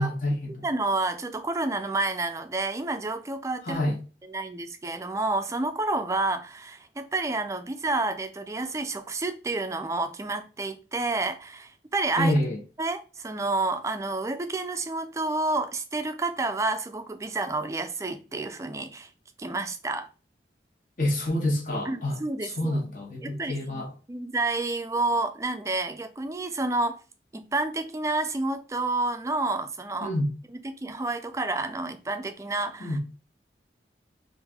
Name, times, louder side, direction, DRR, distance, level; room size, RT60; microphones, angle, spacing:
voice 1, 0.0-0.6 3.6-4.0 12.2-12.6 21.0-23.9 30.0-30.3 32.8-33.0, left 1 dB, 50° left, 0.9 m, -27 dB
voice 2, 0.6-3.8 4.3-12.3 12.8-19.1 19.4-20.1 21.9-22.8 23.2-27.0 27.3-30.1 30.6-33.2, right 2 dB, 15° right, 0.3 m, -29 dB
3.2 x 2.5 x 3.5 m
head